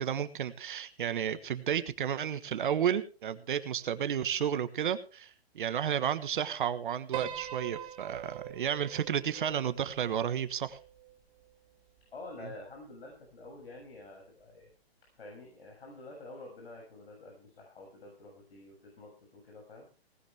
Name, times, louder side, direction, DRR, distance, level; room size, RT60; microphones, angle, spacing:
voice 1, 0.0-10.8 12.4-12.5, right 9 dB, 50° right, 12 dB, 1.4 m, -32 dB
Piano, 7.1-11.5, right 12 dB, 15° right, 1.1 m, -43 dB
voice 2, 12.1-14.7 15.1-19.9, left 2 dB, 70° left, 0 dB, 6.9 m, -48 dB
18.5 x 13.0 x 3.4 m, 0.35 s
hypercardioid pair, 145°, 31 cm